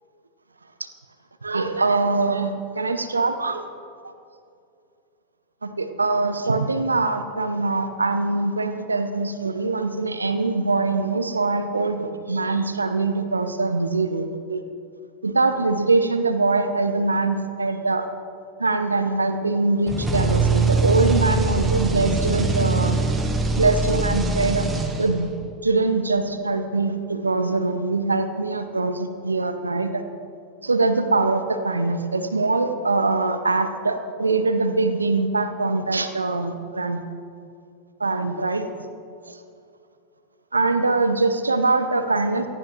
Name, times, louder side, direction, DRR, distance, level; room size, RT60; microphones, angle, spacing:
voice 1, 1.4-3.6 5.6-14.6 15.2-18.1 18.6-23.0 23.6-24.6 25.0-25.3 25.6-30.0 30.6-37.0 38.0-38.6 40.5-42.5, right 3 dB, 80° right, 9 dB, 0.7 m, -23 dB
sound 1, 19.9-25.3, right 3 dB, 15° right, 1.4 m, -22 dB
18.0 x 14.5 x 3.1 m, 2.5 s
figure-of-eight pair, 90°, 0 cm